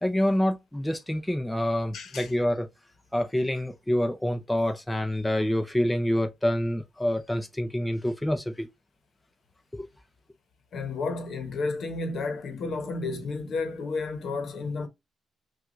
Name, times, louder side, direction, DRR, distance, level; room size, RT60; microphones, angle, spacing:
voice 1, 0.0-2.7 3.1-8.7 9.7-9.9, left 1 dB, 10° left, 0.6 m, -27 dB
voice 2, 1.9-2.3 10.7-14.9, left 3 dB, 60° left, 1.0 m, -32 dB
6.0 x 2.4 x 2.5 m
cardioid pair, 110°, 0 cm